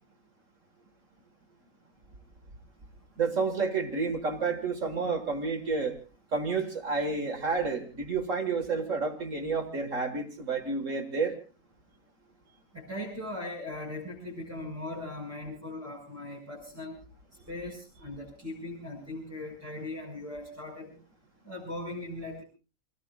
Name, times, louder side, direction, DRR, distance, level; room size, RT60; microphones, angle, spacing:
voice 1, 3.2-6.0 6.3-11.3, right 4 dB, 65° right, 4 dB, 2.3 m, -30 dB
voice 2, 12.7-16.9 17.5-20.9 21.4-22.4, left 2 dB, 10° right, -4 dB, 5.9 m, -39 dB
29.0 x 18.0 x 2.5 m, 0.35 s
omnidirectional pair, 1.5 m